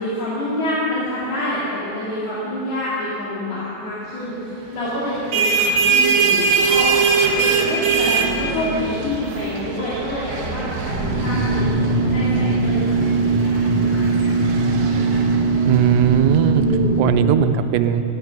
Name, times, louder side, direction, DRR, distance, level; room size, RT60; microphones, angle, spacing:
voice 1, 0.0-6.9 7.3-14.5 16.5-17.0, left 1 dB, 65° left, -9 dB, 4.2 m, -27 dB
sound 1, 5.1-16.4, right 5 dB, 70° right, 1.8 m, -22 dB
sound 2, 10.9-17.3, right 3 dB, 30° left, 3.9 m, -20 dB
voice 2, 15.7-16.7 17.0-18.0, right 11 dB, 90° right, 9 dB, 2.8 m, -18 dB
16.0 x 12.0 x 5.9 m, 2.9 s
omnidirectional pair, 4.9 m